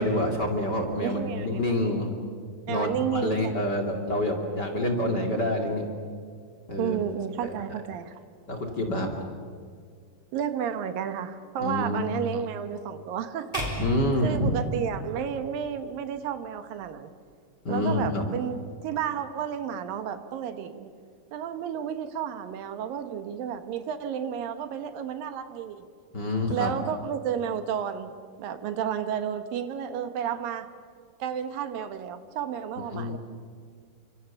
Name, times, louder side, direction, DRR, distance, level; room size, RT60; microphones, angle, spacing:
voice 1, 0.0-2.1 2.7-5.9 6.7-7.0 7.4-7.5 8.5-9.1 11.6-12.0 13.8-14.6 17.6-18.2 26.1-26.7 32.9-33.2, left 1 dB, 35° left, 3 dB, 2.5 m, -27 dB
voice 2, 1.0-1.6 2.7-3.5 6.8-8.2 9.0-9.1 10.3-13.8 14.2-17.1 17.7-20.9 21.3-25.8 26.5-28.1 28.4-30.7 31.2-33.2, right 8 dB, 75° right, 9 dB, 2.9 m, -32 dB
sound 1, 13.5-15.8, left 1 dB, 10° left, 5.4 m, -35 dB
30.0 x 25.5 x 7.0 m, 2.1 s
omnidirectional pair, 4.1 m